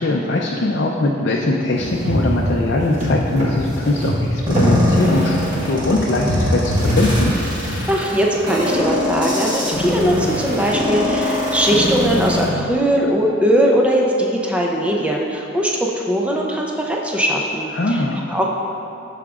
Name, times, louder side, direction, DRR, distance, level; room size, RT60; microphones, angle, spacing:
voice 1, 0.0-7.3 17.7-18.2, left 2 dB, 55° left, -2 dB, 0.5 m, -21 dB
sound 1, 1.7-7.7, equal, 40° right, 1.4 m, -22 dB
sound 2, 4.5-12.5, left 1 dB, 20° right, 1.3 m, -22 dB
voice 2, 7.9-18.5, equal, 5° right, -1 dB, 0.5 m, -20 dB
14.0 x 4.9 x 2.4 m, 2.8 s
head